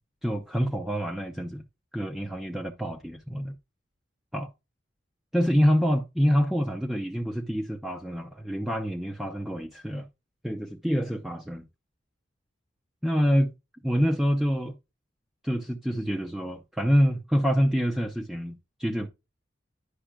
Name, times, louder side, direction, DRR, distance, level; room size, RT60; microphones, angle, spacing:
voice 1, 0.2-1.6 1.9-3.6 4.3-4.5 5.3-10.1 10.4-11.7 13.0-13.5 13.8-14.8 15.4-19.1, equal, ahead, 0.6 m, -26 dB
10.0 x 5.4 x 2.3 m
head